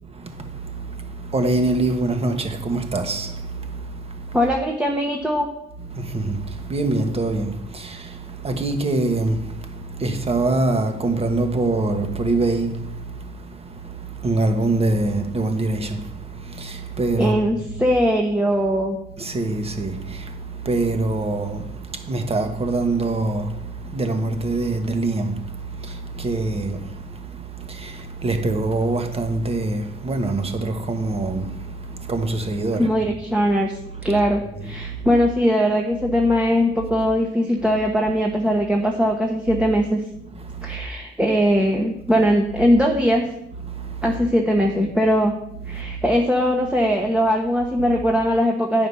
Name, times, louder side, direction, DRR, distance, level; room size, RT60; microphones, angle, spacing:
voice 1, 0.0-4.4 5.9-17.4 19.2-33.1 34.1-34.2 34.5-35.1 40.3-40.8 43.7-44.1 45.7-46.0, right 2 dB, 30° right, 1.3 m, -25 dB
voice 2, 4.3-5.5 17.2-19.0 32.8-40.0 40.6-43.3 44.0-45.3 45.7-48.9, equal, 5° right, 1.1 m, -20 dB
9.6 x 5.1 x 5.5 m
cardioid pair, 90°, 20 cm